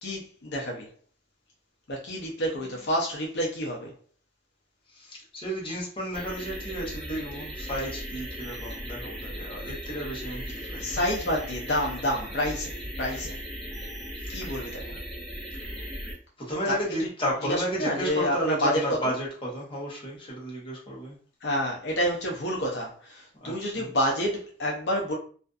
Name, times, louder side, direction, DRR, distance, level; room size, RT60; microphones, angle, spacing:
voice 1, 0.0-0.9 1.9-3.9 10.8-13.3 14.3-15.0 16.7-17.1 17.4-19.1 21.4-25.1, equal, 60° left, -2 dB, 0.6 m, -29 dB
voice 2, 2.6-2.9 4.9-11.1 14.2-14.5 15.6-15.7 16.4-21.1 23.4-23.9, equal, 30° left, -4 dB, 0.8 m, -33 dB
sound 1, 6.1-16.1, equal, 5° left, 0.5 m, -37 dB
2.5 x 2.4 x 2.3 m, 0.43 s
head